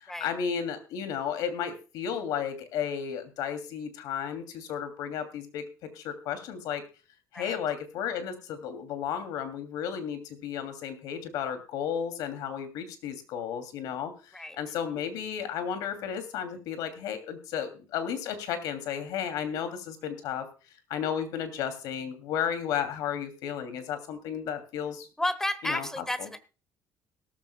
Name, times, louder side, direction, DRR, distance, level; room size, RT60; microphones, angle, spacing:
voice 1, 0.0-6.8 7.3-20.5 20.9-25.1 25.6-26.3, left 8 dB, 75° left, 9 dB, 2.8 m, -33 dB
voice 2, 25.2-26.4, left 1 dB, 5° left, 15 dB, 1.1 m, -32 dB
17.5 x 14.0 x 2.3 m, 0.33 s
cardioid pair, 145°, 6 cm